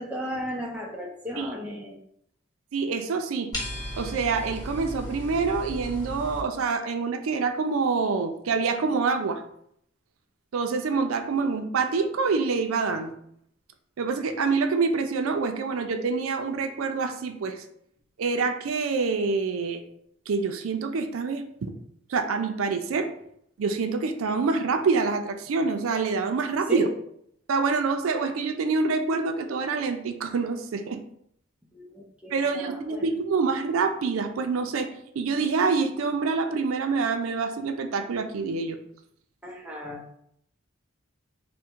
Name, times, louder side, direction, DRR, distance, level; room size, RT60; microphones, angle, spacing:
voice 1, 0.0-2.0 26.7-26.9 31.7-33.1 39.4-40.1, equal, 5° right, -2 dB, 0.5 m, -35 dB
voice 2, 2.7-3.5 4.0-9.4 10.5-13.1 14.0-17.6 18.2-19.8 20.3-21.7 22.1-23.1 23.6-26.9 27.5-31.0 32.3-38.8, right 4 dB, 90° right, 7 dB, 0.4 m, -26 dB
sound 1, 3.5-6.4, left 1 dB, 20° left, 1.0 m, -35 dB
3.5 x 2.1 x 4.4 m, 0.70 s
head